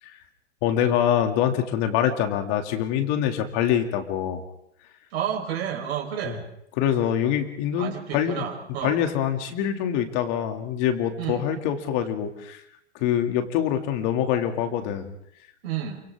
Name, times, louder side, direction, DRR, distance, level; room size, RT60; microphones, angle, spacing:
voice 1, 0.6-4.4 6.2-6.4 6.8-8.4 8.8-12.6 12.9-15.1, left 9 dB, 45° left, 6 dB, 2.6 m, -25 dB
voice 2, 5.1-6.4 7.8-9.0 11.2-11.5 15.6-16.0, right 9 dB, 60° right, 2 dB, 4.6 m, -30 dB
28.0 x 25.0 x 3.7 m, 0.73 s
hypercardioid pair, 125°, 36 cm